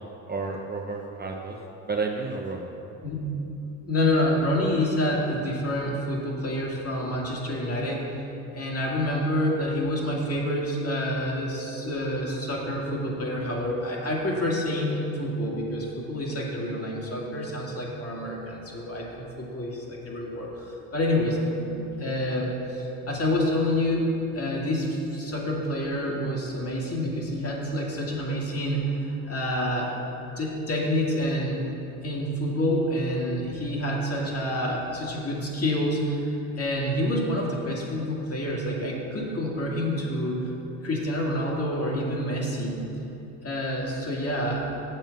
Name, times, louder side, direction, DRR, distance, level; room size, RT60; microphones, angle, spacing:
voice 1, 0.0-1.6 1.8-2.7, right 4 dB, 25° right, 0 dB, 0.8 m, -31 dB
voice 2, 3.9-8.2 8.5-21.4 21.7-29.9 30.4-31.7 32.0-40.5 40.8-42.8 43.4-44.7, left 1 dB, 35° left, -2 dB, 2.3 m, -28 dB
7.7 x 7.2 x 5.3 m, 2.9 s
supercardioid pair, 80°, 41 cm